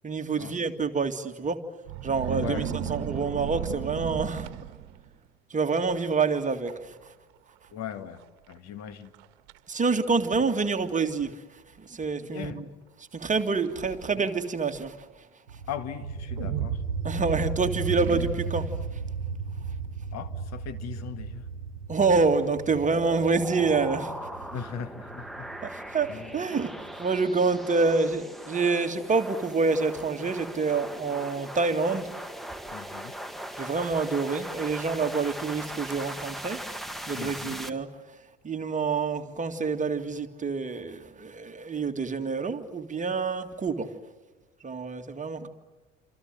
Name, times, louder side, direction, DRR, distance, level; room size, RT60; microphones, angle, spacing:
voice 1, 0.0-1.6 2.0-4.5 5.5-6.7 9.7-11.3 11.9-12.6 13.1-14.9 17.0-18.7 21.9-24.1 25.9-26.7 27.0-32.1 33.6-36.6 37.1-37.9 38.4-43.9 44.6-45.5, right 4 dB, 20° right, 6 dB, 2.1 m, -27 dB
sound 1, 1.9-5.1 5.8-6.0 6.3-6.8 7.0-7.1 7.9-8.0 8.5-8.6 9.1-9.6 10.4-10.5 13.3-14.3 16.4-17.4 17.9-18.7, right 11 dB, 55° right, 1.5 m, -35 dB
voice 2, 2.3-3.1 7.7-8.2 8.5-9.1 12.3-12.6 15.7-16.8 20.1-21.5 24.5-25.5 26.1-26.4 32.7-33.1 37.1-37.6, left 8 dB, 45° left, 10 dB, 2.1 m, -38 dB
sound 2, 15.5-27.0, right 5 dB, 80° right, 1.2 m, -35 dB
sound 3, 22.9-37.7, right 1 dB, ahead, 1.7 m, -39 dB
27.5 x 27.5 x 7.8 m, 1.2 s
figure-of-eight pair, 65°, 36 cm